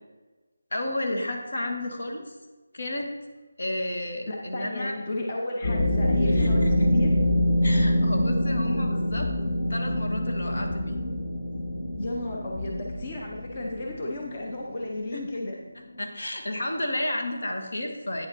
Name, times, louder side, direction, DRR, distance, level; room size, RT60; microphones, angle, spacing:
voice 1, 0.7-2.3 2.7-3.1 3.6-4.9 6.3-6.7 7.6-9.3 9.7-11.0 15.1-15.2 16.0-18.3, left 1 dB, 70° left, 3 dB, 1.7 m, -32 dB
voice 2, 4.3-7.1 12.0-15.5, left 1 dB, 25° left, -1 dB, 0.7 m, -33 dB
sound 1, 5.6-15.9, left 1 dB, 50° left, 1.7 m, -25 dB
9.0 x 6.7 x 4.3 m, 1.2 s
figure-of-eight pair, 175°, 0 cm